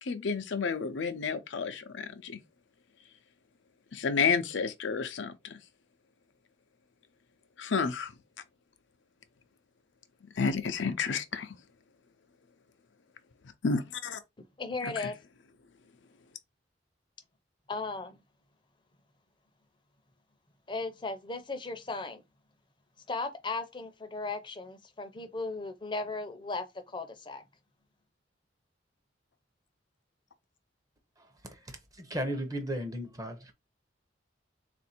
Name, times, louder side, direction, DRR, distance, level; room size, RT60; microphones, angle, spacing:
voice 1, 0.0-2.4 3.9-5.6 7.6-8.1 10.4-11.5 13.6-14.2 14.8-15.1, left 5 dB, 80° left, 0.5 m, -31 dB
voice 2, 14.6-15.1 17.7-18.2 20.7-22.2 23.1-27.4, left 3 dB, 25° left, 0.6 m, -36 dB
voice 3, 31.2-33.5, equal, 20° right, 0.7 m, -36 dB
3.6 x 2.6 x 4.2 m
head